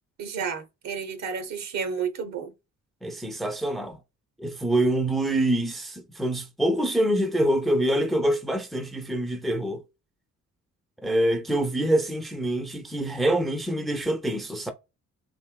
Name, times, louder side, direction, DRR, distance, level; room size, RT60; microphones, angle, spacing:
voice 1, 0.2-2.5, right 6 dB, 60° right, 0.8 m, -31 dB
voice 2, 3.0-4.0 4.4-9.8 11.0-14.7, right 1 dB, ahead, 0.5 m, -25 dB
3.2 x 2.6 x 2.2 m
cardioid pair, 90°, 30 cm